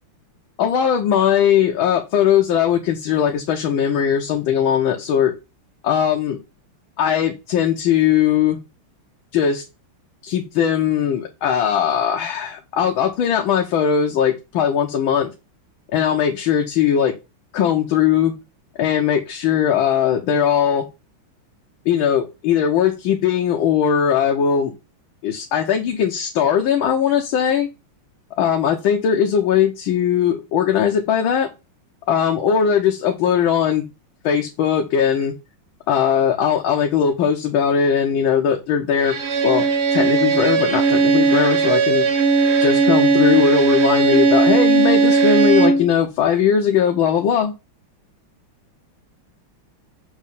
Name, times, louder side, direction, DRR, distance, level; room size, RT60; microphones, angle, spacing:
voice 1, 0.6-5.3 5.8-6.4 7.0-8.6 9.3-9.6 10.2-15.3 15.9-17.1 17.5-18.3 18.8-20.9 21.8-24.7 25.2-27.7 28.4-31.5 32.1-33.8 34.2-35.3 35.9-39.2 39.4-39.6 39.9-42.1 42.6-47.5, left 8 dB, 70° left, 3 dB, 1.6 m, -19 dB
Bowed string instrument, 39.0-45.9, right 4 dB, 80° right, 2.3 m, -17 dB
6.5 x 3.1 x 5.4 m, 0.26 s
omnidirectional pair, 2.4 m